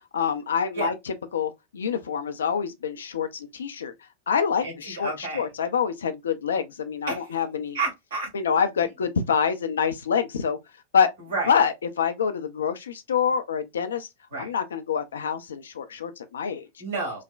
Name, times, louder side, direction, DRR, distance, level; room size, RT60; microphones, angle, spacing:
voice 1, 0.1-3.9 4.3-7.8 8.3-10.6 10.9-11.1 11.5-14.1 14.4-16.7, left 7 dB, 65° left, 0.4 m, -26 dB
voice 2, 4.6-5.4 7.1-7.3 7.7-8.3 11.3-11.5 14.3-14.5 16.8-17.2, right 3 dB, 60° right, 1.7 m, -30 dB
3.2 x 2.1 x 2.4 m
figure-of-eight pair, 90°, 0 cm